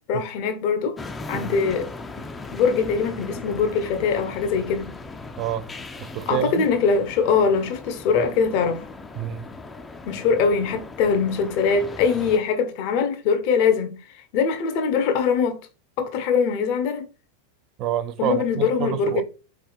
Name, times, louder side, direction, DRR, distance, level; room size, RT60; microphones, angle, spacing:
voice 1, 0.1-1.0 1.3-1.9 2.2-4.9 6.3-8.9 10.0-14.0 14.3-15.6 16.0-17.1 18.2-19.2, left 5 dB, 45° left, 0.8 m, -22 dB
sound 1, 1.0-12.4, left 3 dB, 15° left, 0.5 m, -38 dB
voice 2, 5.4-5.7 6.0-6.7 9.2-9.5 17.8-19.2, right 10 dB, 35° right, 0.4 m, -27 dB
4.1 x 3.3 x 3.9 m
figure-of-eight pair, 90°, 0 cm